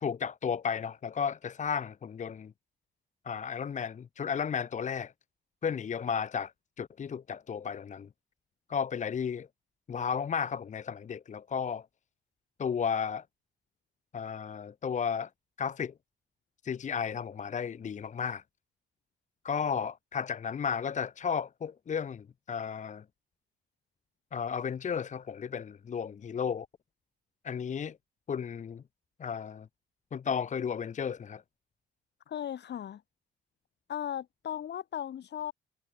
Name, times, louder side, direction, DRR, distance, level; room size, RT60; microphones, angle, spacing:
voice 1, 0.0-2.5 3.3-5.1 5.6-6.5 6.8-8.1 8.7-9.5 9.9-11.8 12.6-13.2 14.1-15.3 15.6-15.9 16.6-18.4 19.4-23.0 24.3-26.7 27.4-28.0 28.3-28.8 29.2-29.7 30.1-31.4, left 7 dB, 40° left, 0.7 m, -33 dB
voice 2, 32.3-33.0 33.9-35.5, left 10 dB, 60° left, 1.6 m, -37 dB
cardioid pair, 90°, 20 cm